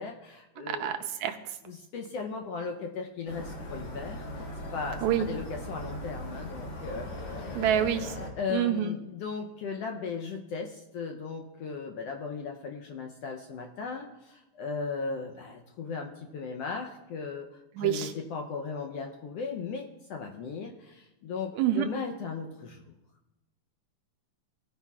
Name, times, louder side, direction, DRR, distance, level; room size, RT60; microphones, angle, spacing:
voice 1, 0.0-0.9 1.7-7.1 7.4-7.6 8.4-22.9, left 5 dB, 75° left, 3 dB, 1.5 m, -37 dB
voice 2, 0.6-1.4 5.0-5.3 7.6-8.2 8.5-8.9 17.8-18.1 21.6-21.9, right 10 dB, 80° right, 7 dB, 1.8 m, -27 dB
sound 1, 3.3-8.3, left 1 dB, 55° left, 2.1 m, -39 dB
18.5 x 9.8 x 2.4 m, 0.96 s
omnidirectional pair, 3.5 m